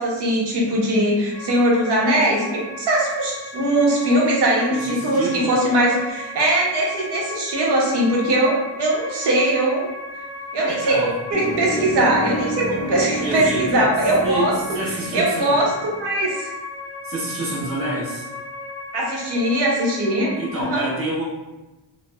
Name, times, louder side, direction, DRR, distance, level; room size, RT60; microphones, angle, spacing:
voice 1, 0.0-9.9 10.5-14.5 15.1-16.5 18.9-20.9, right 1 dB, 60° right, -3 dB, 0.7 m, -21 dB
sound 1, 1.3-20.6, left 2 dB, 30° left, 0.7 m, -36 dB
voice 2, 4.7-5.5 10.6-11.1 13.2-13.7 14.2-15.6 17.0-18.3 20.3-21.2, right 2 dB, 30° right, -6 dB, 0.8 m, -27 dB
sound 2, 11.3-16.0, equal, 5° left, 0.3 m, -30 dB
3.0 x 2.0 x 2.2 m, 1.0 s
wide cardioid pair, 175°, 45 cm